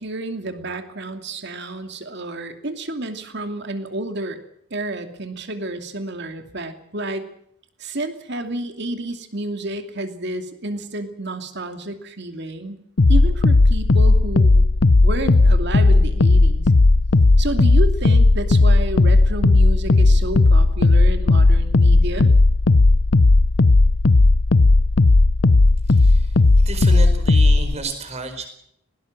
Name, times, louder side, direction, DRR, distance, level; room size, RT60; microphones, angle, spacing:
voice 1, 0.0-4.4 4.7-7.3 7.8-12.8 13.1-14.7 15.0-16.6 17.4-22.3, right 1 dB, 50° right, 7 dB, 2.7 m, -30 dB
sound 1, 13.0-27.7, left 2 dB, 60° left, 0.8 m, -15 dB
voice 2, 25.9-28.5, right 3 dB, 30° right, 8 dB, 4.6 m, -32 dB
19.5 x 18.5 x 7.5 m, 0.70 s
head